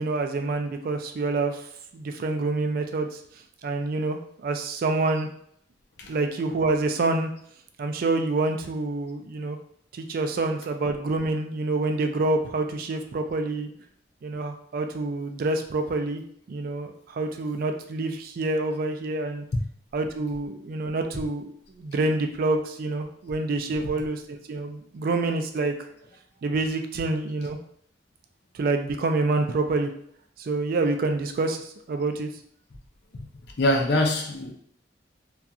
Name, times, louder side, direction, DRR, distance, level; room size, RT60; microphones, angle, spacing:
voice 1, 0.0-1.6 1.9-3.1 3.6-5.3 6.1-7.3 7.8-9.6 9.9-13.7 14.2-16.2 16.5-19.4 19.9-21.5 21.8-25.7 26.4-27.6 28.5-29.9 30.4-32.3, right 3 dB, 55° right, 5 dB, 0.3 m, -27 dB
voice 2, 33.6-34.5, left 1 dB, 65° left, 1 dB, 0.5 m, -24 dB
2.7 x 2.3 x 2.3 m, 0.65 s
head